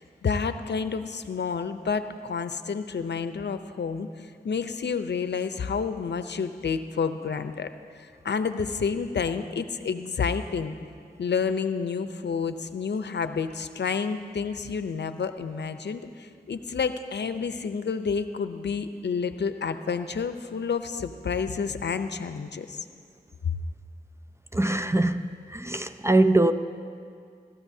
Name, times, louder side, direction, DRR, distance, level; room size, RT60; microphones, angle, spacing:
voice 1, 0.0-4.1 4.4-7.7 8.0-10.8 11.2-22.8 23.4-23.6, left 5 dB, 75° left, 0.6 m, -29 dB
voice 2, 24.5-25.3 25.5-26.5, right 2 dB, 15° right, 0.5 m, -22 dB
18.0 x 14.0 x 2.7 m
cardioid pair, 40°, 18 cm